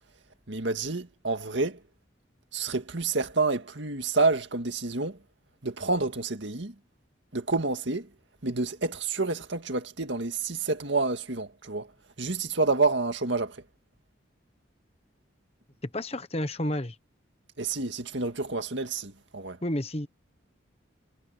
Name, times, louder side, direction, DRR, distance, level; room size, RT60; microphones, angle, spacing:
voice 1, 0.5-1.8 2.5-5.2 5.6-6.7 7.3-8.1 8.4-11.9 12.2-13.6 17.6-19.6, right 3 dB, 70° right, 2.0 m, -28 dB
voice 2, 15.9-17.0 19.6-20.1, left 1 dB, 30° left, 1.1 m, -30 dB
head